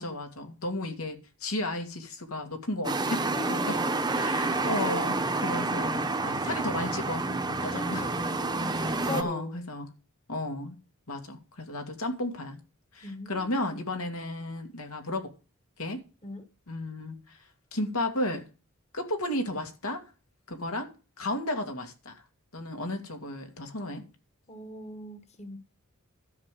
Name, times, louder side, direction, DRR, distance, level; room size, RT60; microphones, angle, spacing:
voice 1, 0.0-3.2 3.5-3.8 4.1-8.1 8.7-9.9 10.3-10.8 11.1-12.6 12.9-15.3 15.8-16.0 16.7-17.4 17.7-18.4 18.9-20.0 20.5-22.2 22.5-24.0, left 1 dB, 80° left, 2.4 m, -34 dB
sound 1, 2.8-9.2, right 3 dB, 20° right, 1.0 m, -29 dB
voice 2, 3.3-5.0 7.7-9.6 13.0-13.8 16.2-16.4 24.5-25.6, left 1 dB, 30° left, 1.5 m, -40 dB
12.5 x 5.4 x 7.6 m
head